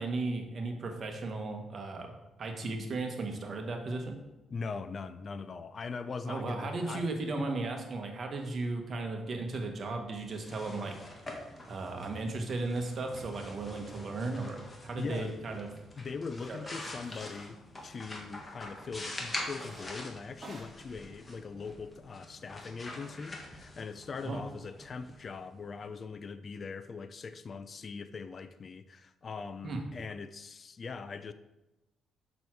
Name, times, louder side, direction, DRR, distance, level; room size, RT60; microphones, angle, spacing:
voice 1, 0.0-2.1 2.4-4.2 6.3-11.0 11.7-15.7 16.5-16.6 24.2-24.4 29.6-29.8, right 3 dB, 45° right, 4 dB, 1.4 m, -35 dB
voice 2, 4.5-7.1 7.4-7.5 15.0-15.6 16.0-31.3, left 5 dB, 40° left, 12 dB, 0.5 m, -41 dB
sound 1, 10.2-25.9, left 1 dB, 25° left, 1.6 m, -45 dB
sound 2, 16.4-16.5 17.0-17.5 17.8-18.5 19.5-19.9 20.3-22.1, right 2 dB, 30° right, 1.9 m, -52 dB
6.8 x 6.2 x 4.6 m, 0.99 s
cardioid pair, 90°, 0 cm